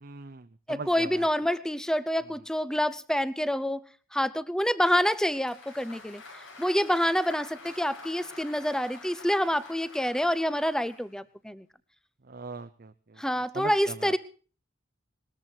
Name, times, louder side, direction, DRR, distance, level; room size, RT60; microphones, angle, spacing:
voice 1, 0.0-1.3 12.3-12.9 13.5-14.1, right 3 dB, 50° right, 8 dB, 0.7 m, -40 dB
voice 2, 0.7-3.8 4.1-6.2 6.6-11.7 13.2-14.2, equal, 5° left, 17 dB, 0.7 m, -27 dB
Applause, 5.1-11.1, left 3 dB, 85° left, 7.4 m, -47 dB
20.0 x 14.0 x 4.5 m, 0.40 s
head